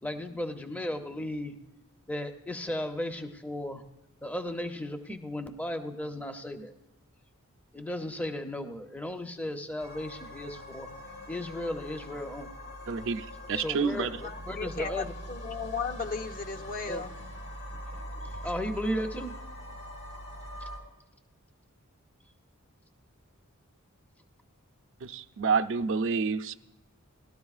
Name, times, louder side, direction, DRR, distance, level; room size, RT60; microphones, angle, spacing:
voice 1, 0.0-1.5 2.1-3.8 4.2-6.7 7.7-10.9 11.3-12.5 13.5-14.1 14.5-15.1 16.9-17.0 18.2-19.3, left 1 dB, 5° left, 6 dB, 0.6 m, -35 dB
sound 1, 9.8-20.8, equal, 80° left, 3.6 m, -42 dB
voice 2, 12.9-14.1 25.0-26.5, right 5 dB, 60° right, 8 dB, 0.5 m, -29 dB
voice 3, 14.2-18.8, left 4 dB, 40° left, 8 dB, 0.7 m, -37 dB
19.0 x 12.5 x 2.4 m, 0.99 s
head